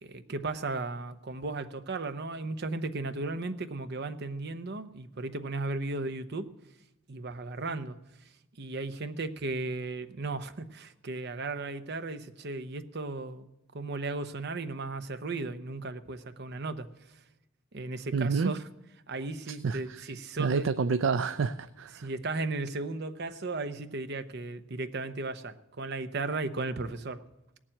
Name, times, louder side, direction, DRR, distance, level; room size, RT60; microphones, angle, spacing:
voice 1, 0.0-6.5 7.1-8.0 8.6-13.5 13.7-17.2 17.7-18.6 19.1-20.7 21.9-27.2, right 3 dB, 60° right, 10 dB, 0.8 m, -35 dB
voice 2, 18.1-18.5 19.5-20.1 20.4-22.1, right 5 dB, 80° right, 11 dB, 0.5 m, -29 dB
17.5 x 7.4 x 8.7 m, 0.94 s
head